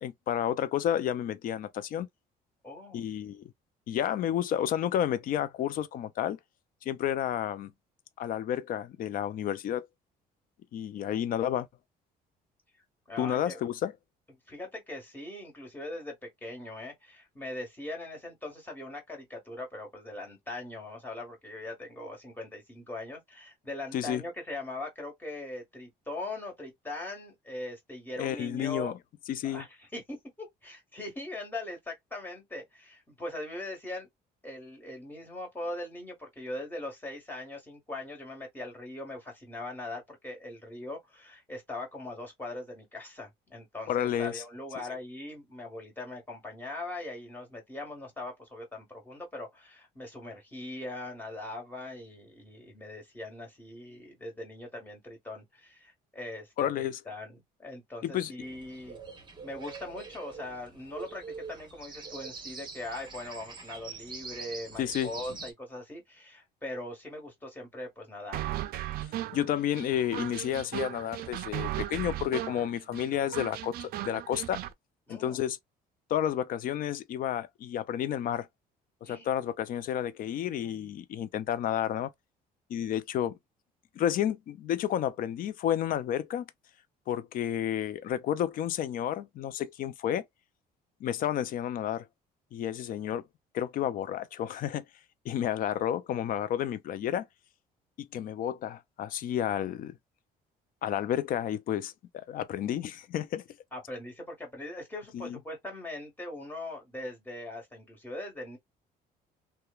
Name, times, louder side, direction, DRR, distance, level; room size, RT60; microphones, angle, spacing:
voice 1, 0.0-2.1 2.9-3.5 3.9-6.4 6.8-7.7 8.2-9.9 10.7-11.7 13.2-13.9 23.9-24.2 28.2-28.9 29.3-29.6 43.9-44.4 56.6-57.0 58.0-58.3 64.8-65.1 69.3-74.6 75.1-75.6 76.1-78.5 79.0-82.1 82.7-83.4 84.0-86.5 87.1-90.2 91.0-92.1 92.5-93.2 93.5-94.8 95.2-97.3 98.0-100.0 100.8-103.4 105.1-105.4, left 10 dB, 55° left, 0.5 m, -31 dB
voice 2, 2.6-3.0 13.1-13.6 14.5-28.9 29.4-34.1 34.4-59.0 59.4-68.5 75.1-75.4 79.0-79.3 103.7-108.6, left 2 dB, 10° left, 1.5 m, -41 dB
sound 1, 58.4-65.5, right 5 dB, 25° right, 0.9 m, -44 dB
sound 2, 68.3-74.7, right 14 dB, 65° right, 0.4 m, -36 dB
3.0 x 2.2 x 2.3 m
cardioid pair, 110°, 17 cm